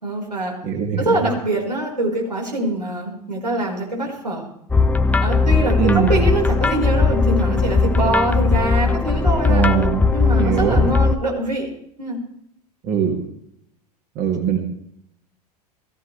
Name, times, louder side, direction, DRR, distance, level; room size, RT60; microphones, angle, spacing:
voice 1, 0.0-0.5 1.0-4.5 5.2-9.7 10.1-11.7 12.0-12.2, right 2 dB, 85° right, -2 dB, 5.0 m, -24 dB
voice 2, 0.6-1.0 5.8-6.1 9.5-10.0 10.4-10.9 12.9-13.2 14.2-14.6, right 8 dB, 40° right, 1 dB, 2.9 m, -20 dB
sound 1, 4.7-11.1, left 4 dB, 5° left, 0.9 m, -18 dB
21.0 x 16.0 x 3.4 m, 0.73 s
figure-of-eight pair, 80°, 21 cm